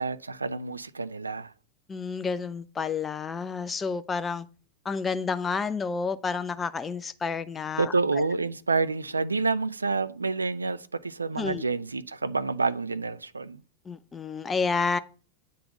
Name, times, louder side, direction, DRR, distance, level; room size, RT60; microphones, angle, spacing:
voice 1, 0.0-1.5 7.8-13.6, right 4 dB, 80° right, 0.4 m, -28 dB
voice 2, 1.9-4.5 4.9-7.9 11.4-11.6 13.9-15.0, left 5 dB, 15° left, 0.4 m, -30 dB
8.3 x 3.9 x 5.3 m
figure-of-eight pair, 90°, 0 cm